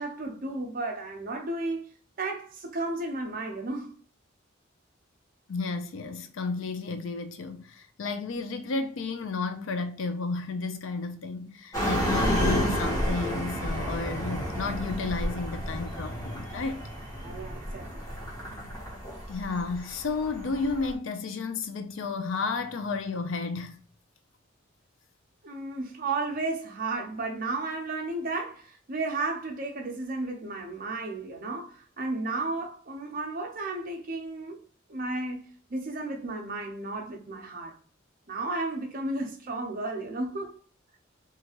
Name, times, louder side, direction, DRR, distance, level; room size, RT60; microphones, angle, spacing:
voice 1, 0.0-1.8 2.2-3.9 17.2-18.1 25.4-34.6 34.9-37.8 38.3-40.5, right 2 dB, 45° right, 0.7 m, -33 dB
voice 2, 5.5-16.8 19.3-23.8, left 4 dB, 70° left, 0.4 m, -32 dB
sound 1, 11.7-20.9, equal, 15° left, 1.1 m, -31 dB
2.9 x 2.4 x 2.8 m
head